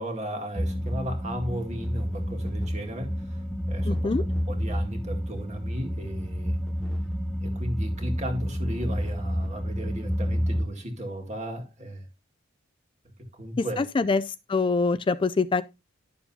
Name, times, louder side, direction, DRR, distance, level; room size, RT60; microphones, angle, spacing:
voice 1, 0.0-4.1 4.5-6.6 7.4-12.1 13.3-13.8, equal, 35° right, 2.1 m, -35 dB
sound 1, 0.6-10.6, equal, ahead, 0.7 m, -29 dB
voice 2, 3.9-4.2 13.6-14.2 14.5-15.6, left 4 dB, 25° left, 0.3 m, -24 dB
11.5 x 7.0 x 2.7 m
head